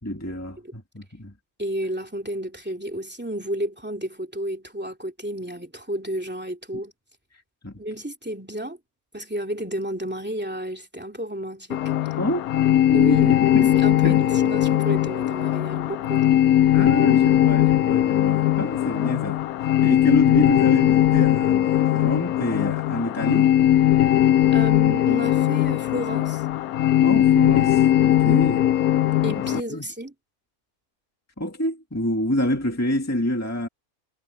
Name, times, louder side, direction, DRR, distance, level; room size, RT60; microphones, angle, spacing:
voice 1, 0.0-1.3 7.6-7.8 12.2-13.7 14.0-14.2 16.7-23.5 27.0-28.6 29.2-29.9 31.4-33.7, left 1 dB, 10° left, 2.2 m, -27 dB
voice 2, 1.6-6.9 7.8-8.8 9.1-12.1 12.9-16.3 24.5-26.4 29.2-30.1, right 1 dB, 5° right, 2.7 m, -32 dB
sound 1, 11.7-29.6, left 12 dB, 75° left, 1.0 m, -19 dB
omnidirectional pair, 1.6 m